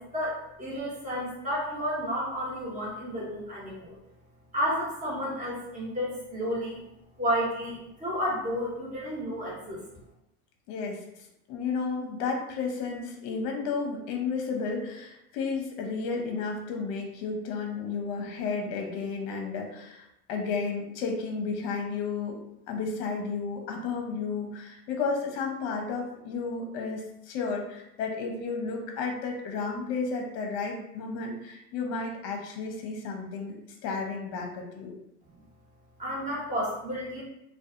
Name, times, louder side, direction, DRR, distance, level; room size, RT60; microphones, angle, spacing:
voice 1, 0.0-3.9 4.5-6.8 7.2-9.8 36.0-37.2, equal, 15° right, -6 dB, 1.0 m, -31 dB
voice 2, 10.7-11.0 11.5-22.4 22.7-34.9, left 4 dB, 55° left, 2 dB, 0.7 m, -32 dB
2.6 x 2.3 x 2.5 m, 0.84 s
supercardioid pair, 105°, 46 cm